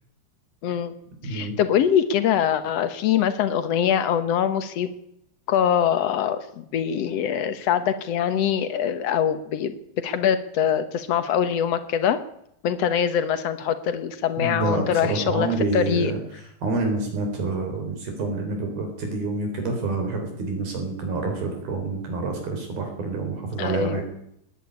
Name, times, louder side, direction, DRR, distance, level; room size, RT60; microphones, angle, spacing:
voice 1, 0.6-0.9 1.2-4.9 5.5-12.2 12.6-15.5 15.7-16.1 23.6-24.0, left 9 dB, 75° left, 11 dB, 1.4 m, -23 dB
voice 2, 1.2-1.6 14.4-24.0, right 3 dB, 65° right, 4 dB, 5.6 m, -27 dB
19.5 x 19.0 x 9.7 m, 0.75 s
omnidirectional pair, 4.6 m